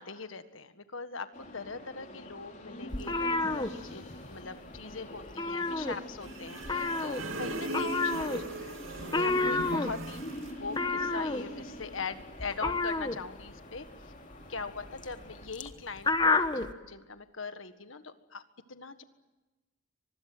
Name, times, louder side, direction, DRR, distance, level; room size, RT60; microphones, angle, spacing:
voice 1, 0.0-8.7 9.1-10.3 10.6-14.1 14.5-18.4 18.7-19.0, left 4 dB, 75° left, 10 dB, 1.7 m, -41 dB
sound 1, 1.3-15.5, left 1 dB, 35° left, 4.3 m, -45 dB
sound 2, 2.9-4.4 4.7-4.9 5.2-6.3 6.6-16.7, left 3 dB, 20° left, 1.2 m, -30 dB
sound 3, 6.2-10.6, right 2 dB, 80° right, 2.8 m, -38 dB
25.0 x 21.0 x 9.2 m, 1.1 s
head